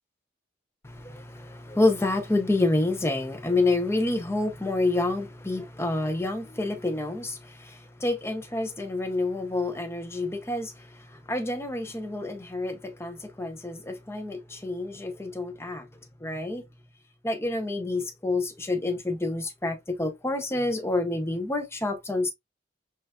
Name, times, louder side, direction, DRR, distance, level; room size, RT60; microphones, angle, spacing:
voice 1, 0.8-15.9 16.2-16.6 17.2-22.3, left 2 dB, 15° left, 0.6 m, -28 dB
6.1 x 2.4 x 2.2 m
head